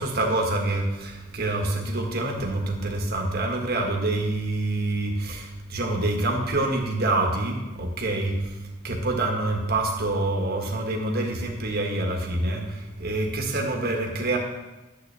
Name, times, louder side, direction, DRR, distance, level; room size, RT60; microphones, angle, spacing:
voice 1, 0.0-5.4 5.7-8.3 8.8-12.6 13.0-14.4, right 2 dB, 45° right, 1 dB, 1.5 m, -26 dB
11.5 x 7.8 x 3.5 m, 1.1 s
head